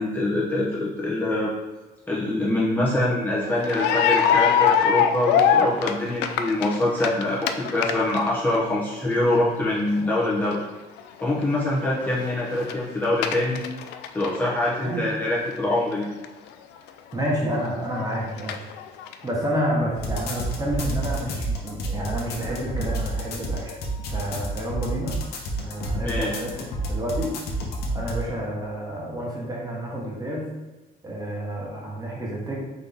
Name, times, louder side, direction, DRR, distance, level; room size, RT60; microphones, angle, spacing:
voice 1, 0.0-1.5 2.1-10.6 11.2-13.6 14.1-16.1 25.9-26.3, left 1 dB, 10° left, -7 dB, 0.9 m, -24 dB
sound 1, 3.6-8.6 8.9-9.1 9.5-9.6 10.1-10.2 10.5-10.6 11.0-11.3 11.5-11.6 11.8-12.7 13.0-14.8 15.1-15.2 15.4-15.5 16.2-16.3 16.9-17.0 17.5-17.7 18.0-19.1, left 8 dB, 85° left, 0.4 m, -23 dB
voice 2, 17.1-18.7 19.2-23.8 24.1-25.1 25.6-27.3 27.9-30.5 31.0-32.6, equal, 20° right, -3 dB, 1.3 m, -29 dB
sound 2, 19.9-28.2, right 1 dB, 70° left, 0.9 m, -29 dB
4.0 x 3.7 x 3.6 m, 1.2 s
cardioid pair, 110°, 17 cm